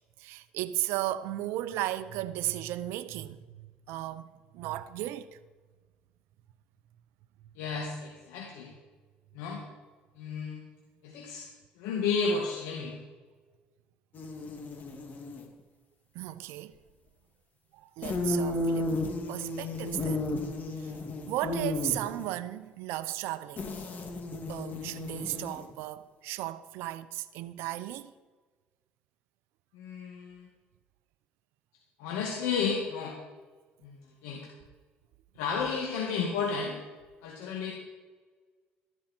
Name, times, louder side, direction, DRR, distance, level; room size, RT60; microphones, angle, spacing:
voice 1, 0.2-5.4 16.1-16.7 17.8-18.9 19.3-20.3 20.8-20.9 21.2-23.7 24.5-28.1, right 14 dB, 80° right, 0.6 m, -35 dB
voice 2, 7.6-8.7 9.3-9.6 10.2-10.7 11.0-11.4 11.8-13.0 29.7-30.5 32.0-33.1 33.8-34.5 35.4-36.8 37.2-37.7, left 5 dB, 85° left, 2.1 m, -32 dB
sound 1, 14.1-15.5 18.0-22.3 23.6-25.8, left 2 dB, 45° left, 2.5 m, -33 dB
13.5 x 12.0 x 4.4 m
supercardioid pair, 80°, 4 cm